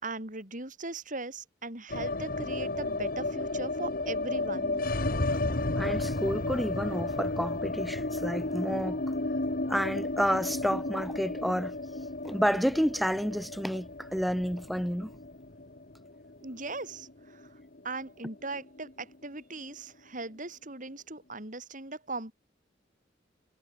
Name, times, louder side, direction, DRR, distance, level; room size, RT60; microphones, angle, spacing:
voice 1, 0.0-4.8 16.4-17.5 17.8-22.3, right 3 dB, 45° right, 5.0 m, -39 dB
sound 1, 1.9-18.0 18.3-18.4 18.6-19.4, left 2 dB, 50° left, 1.5 m, -33 dB
voice 2, 5.8-9.0 9.7-11.8 12.2-15.1, equal, ahead, 0.9 m, -30 dB
head